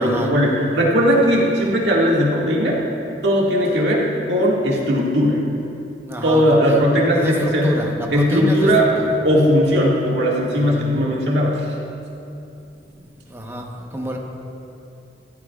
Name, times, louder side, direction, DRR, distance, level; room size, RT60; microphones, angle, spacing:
voice 1, 0.0-2.8 3.2-5.5 6.2-7.8 8.1-8.9 9.2-11.7, equal, 75° right, -4 dB, 2.0 m, -18 dB
voice 2, 6.0-6.8 7.1-8.7 9.0-9.1 10.6-10.8 12.9-14.2, equal, 15° right, 0 dB, 1.0 m, -28 dB
14.5 x 14.0 x 2.4 m, 2.7 s
head